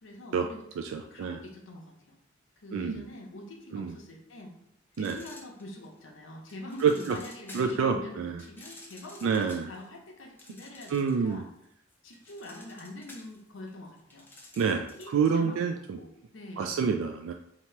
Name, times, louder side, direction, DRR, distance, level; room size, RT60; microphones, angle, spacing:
voice 1, 0.0-0.7 1.0-2.2 2.6-4.5 5.0-11.4 12.0-14.3 15.0-15.6 16.0-16.8, left 1 dB, 75° left, 0 dB, 0.8 m, -45 dB
voice 2, 0.8-1.4 2.7-3.0 3.7-4.0 5.0-5.2 6.8-7.2 7.5-8.4 9.2-9.7 10.9-11.4 14.5-16.0 16.6-17.3, right 6 dB, 90° right, 6 dB, 0.3 m, -28 dB
sound 1, 4.9-6.0 6.5-7.9 8.4-11.3 11.6-15.2, left 2 dB, 10° left, 0.6 m, -51 dB
2.9 x 2.8 x 4.4 m, 0.75 s
head